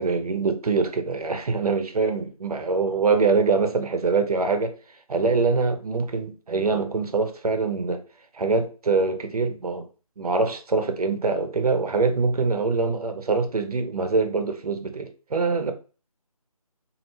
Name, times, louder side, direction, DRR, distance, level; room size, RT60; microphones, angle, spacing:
voice 1, 0.0-4.8 5.1-8.0 8.3-9.9 10.2-15.7, right 4 dB, 75° right, 0.6 m, -24 dB
2.4 x 2.1 x 3.1 m
figure-of-eight pair, 170°, 19 cm